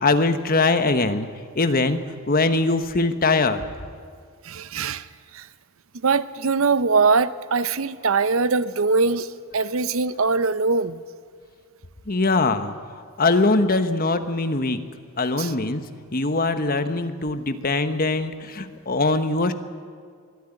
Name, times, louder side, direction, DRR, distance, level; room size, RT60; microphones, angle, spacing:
voice 1, 0.0-1.3 1.6-2.0 2.3-3.6 12.1-12.7 13.2-14.8 15.2-15.8 16.1-19.5, left 3 dB, 40° left, 9 dB, 1.2 m, -22 dB
voice 2, 4.4-5.0 5.3-5.5 6.0-9.3 9.5-11.0 15.4-15.5, right 4 dB, 70° right, 14 dB, 0.7 m, -22 dB
23.0 x 13.0 x 10.0 m, 2.1 s
head